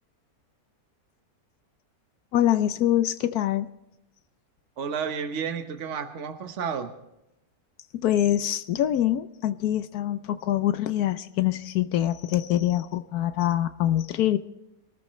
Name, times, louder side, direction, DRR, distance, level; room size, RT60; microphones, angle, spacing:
voice 1, 2.3-3.7 8.0-14.4, left 12 dB, 80° left, 12 dB, 1.2 m, -24 dB
voice 2, 4.8-6.9, right 6 dB, 55° right, 7 dB, 1.4 m, -31 dB
23.5 x 13.5 x 3.1 m, 0.90 s
omnidirectional pair, 1.6 m